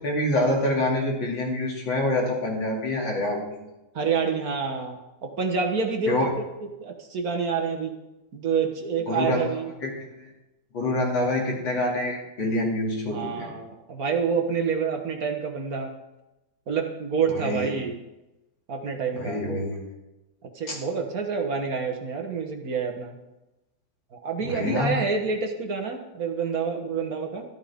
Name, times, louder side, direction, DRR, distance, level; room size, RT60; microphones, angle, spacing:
voice 1, 0.0-3.6 6.1-6.3 9.1-9.4 9.8-9.9 10.2-10.3 10.7-13.5 17.4-17.7 19.1-19.8 20.7-20.8 24.4-24.9, left 1 dB, 75° left, -1 dB, 3.3 m, -26 dB
voice 2, 3.9-8.0 8.3-9.7 13.1-15.9 16.7-18.0 18.7-19.4 20.4-23.2 24.1-27.4, right 5 dB, 55° right, 4 dB, 1.5 m, -28 dB
13.0 x 12.5 x 3.6 m, 0.98 s
omnidirectional pair, 2.1 m